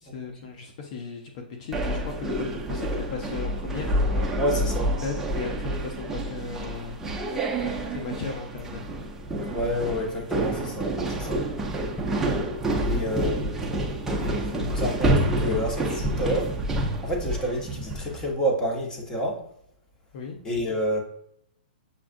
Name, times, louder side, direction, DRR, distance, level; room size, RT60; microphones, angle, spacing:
voice 1, 0.0-4.0 5.0-7.0 7.6-8.9 12.9-13.4 14.2-14.4 20.1-20.4, left 5 dB, 45° left, 2 dB, 0.6 m, -36 dB
sound 1, 1.7-18.2, right 1 dB, 5° right, 0.6 m, -28 dB
voice 2, 4.4-4.9 9.5-11.4 12.8-13.7 14.2-16.5 17.0-19.4 20.4-21.0, equal, 15° left, 0 dB, 1.0 m, -29 dB
6.9 x 2.4 x 2.6 m, 0.72 s
hypercardioid pair, 140°, 5 cm